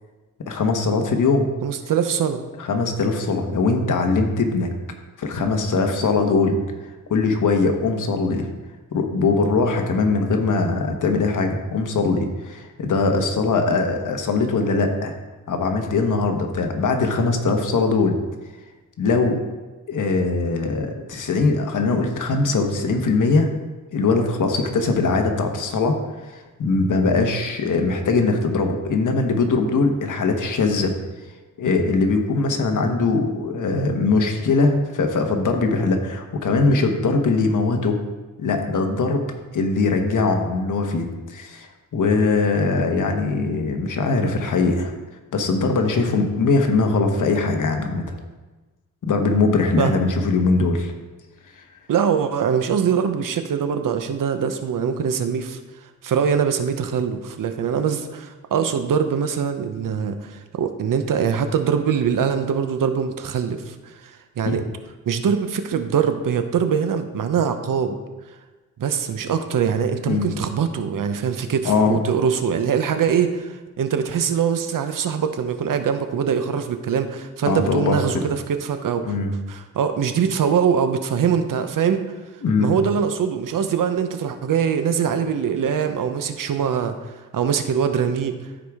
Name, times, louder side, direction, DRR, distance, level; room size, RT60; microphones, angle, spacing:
voice 1, 0.5-1.5 2.6-4.7 5.2-6.6 7.1-8.5 8.9-15.2 15.5-18.2 19.0-19.4 19.9-23.5 23.9-26.0 26.2-30.9 31.6-38.0 38.4-39.2 39.5-44.9 45.3-48.0 49.0-50.9 51.6-51.7 64.5-64.6 70.1-70.3 71.6-72.0 77.4-78.0 79.0-79.3 82.4-82.7, left 3 dB, 65° left, 4 dB, 1.2 m, -21 dB
voice 2, 1.6-2.4 49.8-50.0 51.9-55.6 56.0-64.6 65.1-68.0 68.8-79.2 79.5-82.0 82.6-88.5, right 7 dB, 70° right, 8 dB, 0.8 m, -23 dB
14.0 x 4.9 x 3.6 m, 1.2 s
wide cardioid pair, 110°, 33 cm